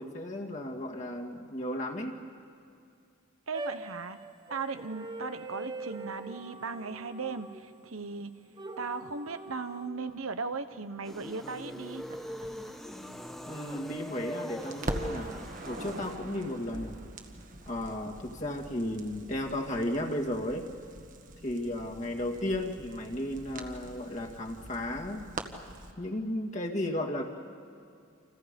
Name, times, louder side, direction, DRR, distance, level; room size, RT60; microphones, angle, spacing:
voice 1, 0.0-2.2 13.5-17.0 17.7-20.7 21.4-25.3 26.0-27.3, left 1 dB, 35° left, 1 dB, 2.1 m, -34 dB
sound 1, 3.5-7.9 8.6-9.9, right 2 dB, 20° right, 1.0 m, -42 dB
voice 2, 3.5-4.2 4.5-8.3 8.8-12.0, right 4 dB, 85° right, 10 dB, 1.1 m, -37 dB
sound 2, 11.0-16.2, equal, ahead, 1.0 m, -41 dB
Crackle, 12.1-14.3 14.6-25.9, right 1 dB, 40° right, 1.5 m, -43 dB
29.0 x 27.5 x 5.3 m, 2.4 s
head